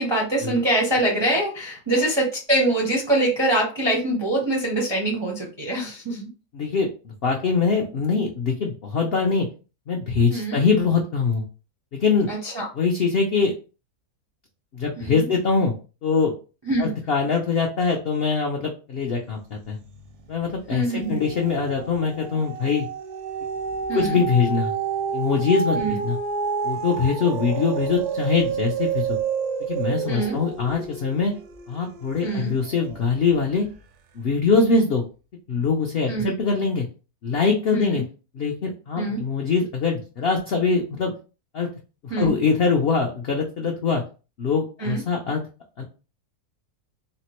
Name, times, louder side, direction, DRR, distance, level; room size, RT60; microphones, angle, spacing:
voice 1, 0.0-6.3 10.3-10.6 12.3-12.7 15.0-15.3 16.7-16.9 20.7-21.2 23.9-24.2 25.7-26.0 30.1-30.4 32.2-32.5 36.1-36.3 37.7-38.0 39.0-39.2 42.1-42.3 44.8-45.0, right 1 dB, 40° right, -2 dB, 0.3 m, -24 dB
voice 2, 6.5-9.5 9.9-11.4 11.9-12.3 12.7-13.5 14.7-15.7 16.0-16.3 16.8-19.8 20.3-22.9 23.9-24.7 25.1-26.2 26.6-29.2 29.6-31.3 31.7-33.6 34.2-35.0 35.5-36.9 37.2-38.0 38.4-41.1 41.5-41.7 42.0-44.0 44.4-45.4 45.8-45.9, left 5 dB, 75° left, 1 dB, 0.5 m, -23 dB
sound 1, 19.7-20.3 20.6-33.1 33.7-33.8, right 6 dB, 85° right, 1.1 m, -30 dB
3.6 x 2.1 x 2.9 m, 0.34 s
omnidirectional pair, 1.6 m